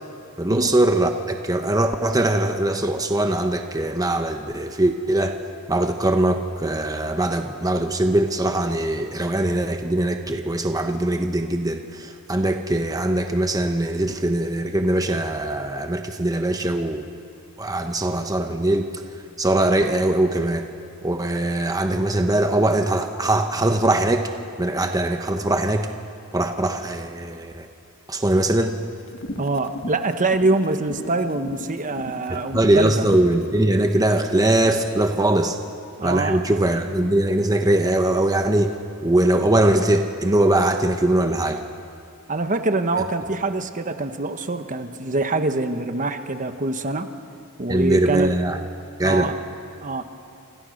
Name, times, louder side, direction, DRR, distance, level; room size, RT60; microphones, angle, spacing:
voice 1, 0.4-5.4 5.7-17.1 17.6-18.9 19.4-20.7 21.0-24.3 24.6-25.9 26.3-27.7 28.1-28.8 32.3-35.6 36.0-38.8 39.0-41.6 47.7-48.6 49.0-49.3, right 1 dB, 15° right, 5 dB, 1.1 m, -21 dB
sound 1, 29.0-33.9, left 1 dB, 60° left, 1.9 m, -37 dB
voice 2, 29.4-33.1 36.0-36.4 42.3-47.1 47.6-48.3 49.0-49.3 49.8-50.0, right 2 dB, 35° right, 8 dB, 1.2 m, -24 dB
27.0 x 26.5 x 6.5 m, 2.4 s
head